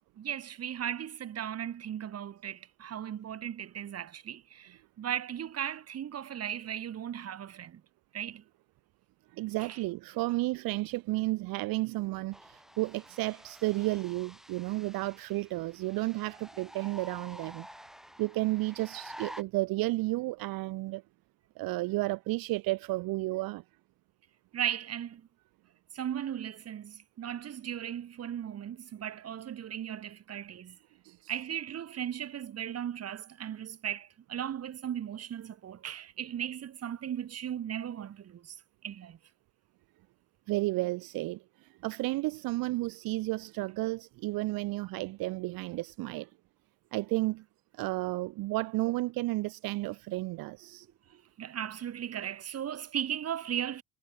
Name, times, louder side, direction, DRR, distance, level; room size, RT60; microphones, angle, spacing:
voice 1, 0.2-7.8 8.1-8.4 9.6-9.8 24.5-25.2 25.9-30.8 31.3-38.6 38.8-39.2 51.1-53.8, right 9 dB, 45° right, 5.9 m, -37 dB
voice 2, 9.3-17.7 18.2-21.0 21.6-23.6 31.0-31.3 40.5-46.3 46.9-47.4 47.7-50.9, right 20 dB, 75° right, 1.7 m, -32 dB
sound 1, 12.3-19.4, equal, ahead, 4.3 m, -50 dB
cardioid pair, 135°, 35 cm